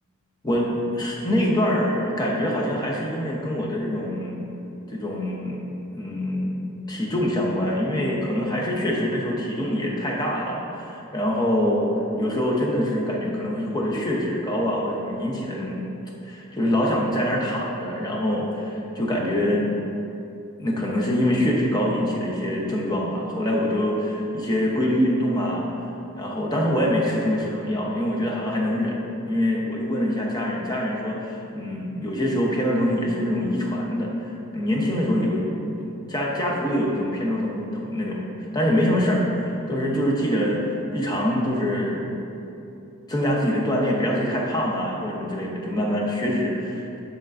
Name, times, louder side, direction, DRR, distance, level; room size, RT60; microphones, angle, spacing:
voice 1, 0.4-4.4 4.9-5.6 5.9-11.9 12.2-15.9 16.2-19.8 20.6-25.7 26.1-29.0 29.3-34.1 34.5-40.6 40.9-42.1 43.1-47.0, equal, 20° left, -3 dB, 0.8 m, -24 dB
10.0 x 4.4 x 2.6 m, 2.8 s
head